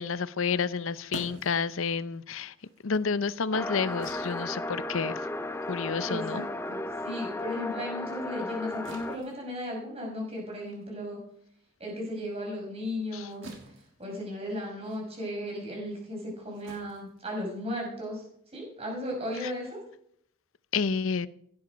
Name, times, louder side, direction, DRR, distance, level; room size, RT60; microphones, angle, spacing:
voice 1, 0.0-2.5 2.8-5.1 5.7-6.5 13.1-13.3 20.7-21.3, left 5 dB, 75° left, 0.6 m, -30 dB
sound 1, 0.6-7.4 7.7-17.9, right 2 dB, 65° right, 2.8 m, -51 dB
sound 2, 3.5-9.2, left 2 dB, 10° left, 0.6 m, -35 dB
voice 2, 6.1-11.2 11.8-13.5 14.0-18.2 18.5-19.8, left 1 dB, 30° right, 5.7 m, -35 dB
16.0 x 10.5 x 5.1 m
head